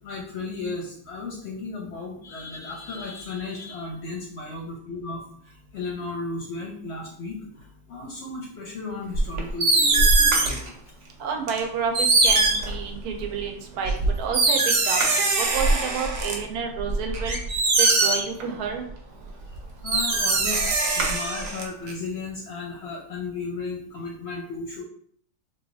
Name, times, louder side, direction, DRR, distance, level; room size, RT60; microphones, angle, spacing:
voice 1, 0.0-10.7 19.8-20.7 20.9-24.8, left 3 dB, 60° left, -1 dB, 0.7 m, -35 dB
sound 1, 9.2-10.7 11.5-11.6 11.9-13.2 13.9-16.3 16.8-18.4 19.5-19.6 19.9-21.9, right 3 dB, 60° right, 0.9 m, -21 dB
voice 2, 11.2-17.4 17.8-18.8, right 6 dB, 85° right, 3 dB, 1.1 m, -30 dB
3.7 x 2.4 x 2.6 m, 0.64 s
omnidirectional pair, 1.6 m